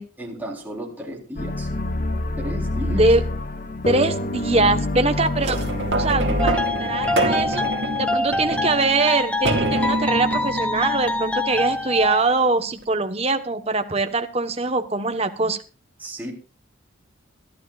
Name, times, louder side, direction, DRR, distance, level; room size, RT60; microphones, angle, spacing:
voice 1, 0.2-1.7 2.4-3.1 16.0-16.3, right 1 dB, 10° right, -2 dB, 3.9 m, -33 dB
sound 1, 1.4-6.5, left 2 dB, 45° left, 0.9 m, -26 dB
voice 2, 2.9-3.3 3.8-5.6 5.9-7.7 8.0-15.6, right 3 dB, 30° right, 7 dB, 1.2 m, -22 dB
sound 2, 5.4-12.2 12.8-12.9, right 1 dB, 60° right, 2.4 m, -27 dB
sound 3, 6.4-12.2, left 2 dB, 5° left, 0.6 m, -25 dB
25.5 x 12.0 x 2.5 m, 0.36 s
head